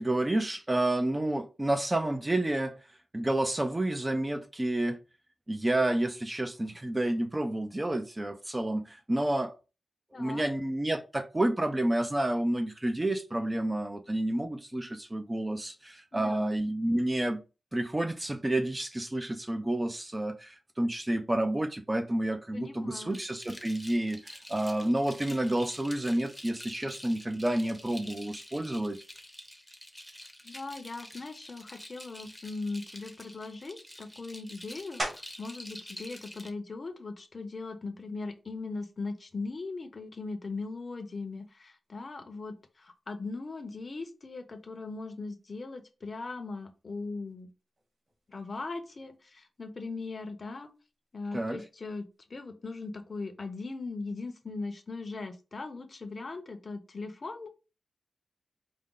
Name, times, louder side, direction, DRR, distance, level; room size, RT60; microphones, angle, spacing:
voice 1, 0.0-2.8 3.1-5.0 5.5-9.5 10.1-17.4 17.7-29.0 51.3-51.6, right 1 dB, 20° right, 0.5 m, -30 dB
voice 2, 10.1-10.4 16.1-16.5 22.5-23.2 30.4-47.5 48.3-50.7 51.1-57.5, left 3 dB, 45° left, 0.7 m, -39 dB
sound 1, 23.1-36.5, equal, ahead, 0.8 m, -48 dB
sound 2, 35.0-35.6 36.1-40.6 41.1-46.3 46.5-52.2, right 1 dB, 45° right, 1.9 m, -46 dB
4.9 x 2.2 x 3.7 m
wide cardioid pair, 95°, 0 cm